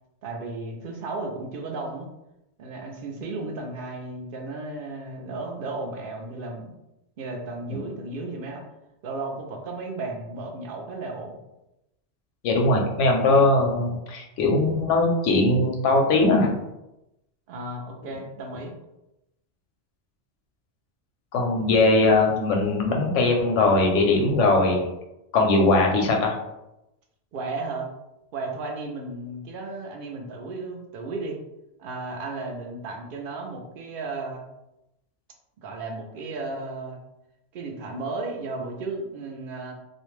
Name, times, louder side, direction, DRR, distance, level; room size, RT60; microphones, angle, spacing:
voice 1, 0.2-2.1 2.6-6.8 7.2-8.6 9.0-11.4 17.5-18.7 27.3-27.9 28.3-31.4 31.8-34.5 35.6-37.0 37.5-39.7, right 3 dB, 60° right, 1 dB, 0.6 m, -34 dB
voice 2, 12.4-16.5 21.3-24.8 25.3-26.3, left 2 dB, 85° left, 1 dB, 0.9 m, -20 dB
2.4 x 2.1 x 3.1 m, 0.91 s
omnidirectional pair, 1.2 m